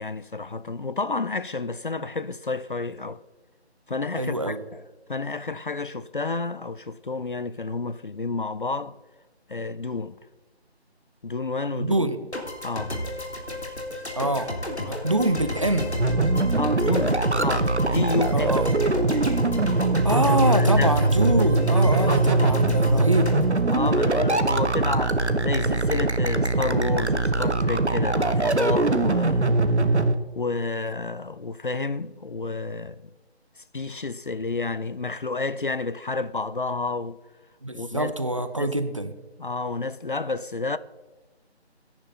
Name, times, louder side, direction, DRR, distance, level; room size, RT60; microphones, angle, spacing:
voice 1, 0.0-3.2 3.9-4.8 5.1-9.0 9.5-10.2 11.2-12.1 12.6-13.0 16.6-18.8 20.2-20.9 22.0-22.7 23.7-29.5 30.3-33.0 33.7-37.2 37.7-38.1 38.6-38.7 39.4-40.8, left 3 dB, 50° left, 0.5 m, -30 dB
voice 2, 4.2-4.6 11.7-12.2 14.1-14.5 14.8-16.0 18.3-18.7 20.0-23.3 37.6-39.1, right 1 dB, 30° right, 0.7 m, -25 dB
sound 1, 12.3-24.5, left 1 dB, 80° left, 3.6 m, -33 dB
sound 2, 16.0-30.1, right 2 dB, 85° right, 1.3 m, -22 dB
18.0 x 10.5 x 4.1 m
figure-of-eight pair, 160°, 33 cm